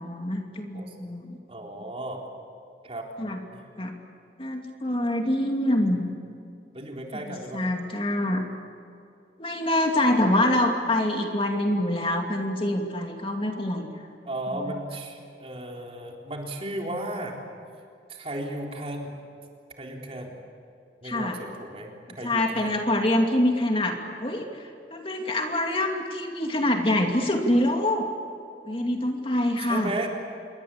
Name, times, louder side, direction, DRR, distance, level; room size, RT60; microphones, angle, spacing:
voice 1, 0.0-1.4 3.2-3.4 3.8-3.9 4.4-6.0 7.1-8.4 9.4-13.9 21.0-21.4 22.2-28.1 28.7-30.1, left 1 dB, 30° left, 2 dB, 2.6 m, -25 dB
voice 2, 1.5-2.2 2.8-3.1 3.5-3.6 6.7-7.6 14.3-17.4 18.1-19.2 19.8-20.4 21.0-21.9 22.2-22.8 29.6-30.1, right 1 dB, 35° right, 0 dB, 3.9 m, -35 dB
27.5 x 23.5 x 8.6 m, 2.5 s
head